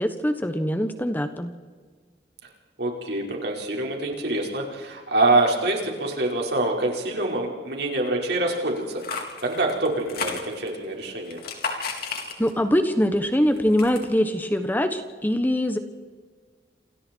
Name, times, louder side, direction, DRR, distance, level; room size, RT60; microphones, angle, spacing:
voice 1, 0.0-1.5 12.4-15.8, equal, 10° left, 8 dB, 1.3 m, -23 dB
voice 2, 2.8-9.0 9.4-11.4, right 2 dB, 65° right, 0 dB, 5.3 m, -25 dB
sound 1, 8.8-10.8 11.3-12.7 13.1-14.1, left 4 dB, 55° left, 4.0 m, -33 dB
30.0 x 28.0 x 4.7 m, 1.5 s
head